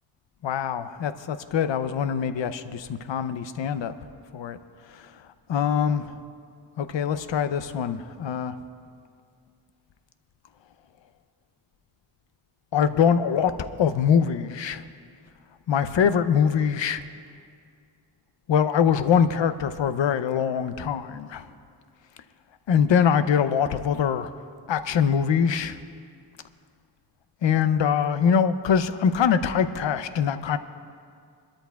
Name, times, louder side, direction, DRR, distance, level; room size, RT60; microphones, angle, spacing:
voice 1, 0.4-3.9 4.3-4.6 5.5-6.1 6.8-8.5 12.7-14.8 15.7-17.0 18.5-21.4 22.7-24.3 24.7-25.8 27.4-30.6, left 7 dB, 80° left, 10 dB, 0.7 m, -23 dB
24.0 x 13.0 x 2.3 m, 2.2 s
wide cardioid pair, 105°, 43 cm